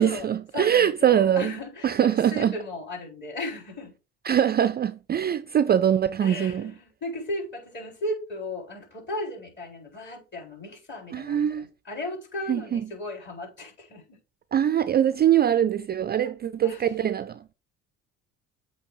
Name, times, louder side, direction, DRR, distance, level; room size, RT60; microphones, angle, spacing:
voice 1, 0.0-1.6 1.8-2.5 4.2-6.7 11.1-11.7 12.5-12.8 14.5-17.5, right 10 dB, 30° right, 0.4 m, -23 dB
voice 2, 0.5-3.9 6.2-14.2 16.2-16.3 16.6-16.9, left 1 dB, 35° left, 4.0 m, -36 dB
8.2 x 2.8 x 4.7 m
supercardioid pair, 80°, 32 cm